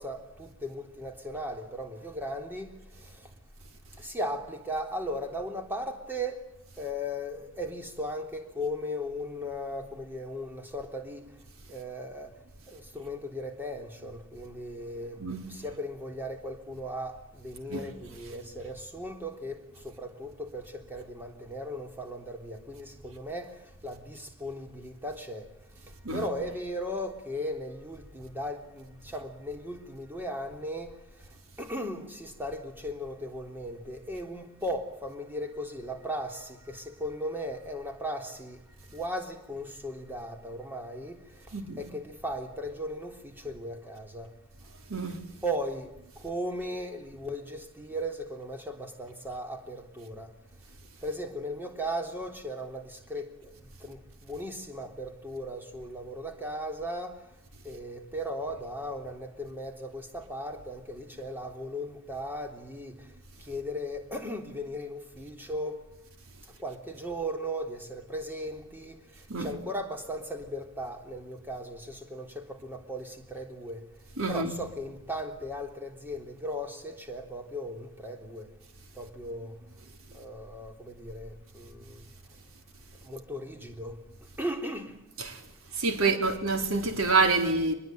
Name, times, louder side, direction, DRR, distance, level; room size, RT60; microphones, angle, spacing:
voice 1, 0.0-2.7 3.0-3.2 4.0-6.5 6.8-11.3 11.7-12.3 12.7-15.2 15.5-25.5 26.1-31.0 31.6-38.6 38.9-41.2 41.8-44.3 45.4-45.9 46.2-50.3 51.0-57.2 57.6-63.1 63.4-65.9 66.6-69.0 69.4-73.8 74.3-78.5 79.0-79.6 80.1-82.0 83.0-84.0 84.4-84.9, equal, 10° right, 3.5 m, -37 dB
voice 2, 44.9-45.2 69.3-69.5 74.2-74.5 85.8-87.7, right 3 dB, 75° right, 3.9 m, -27 dB
25.0 x 21.5 x 9.2 m
head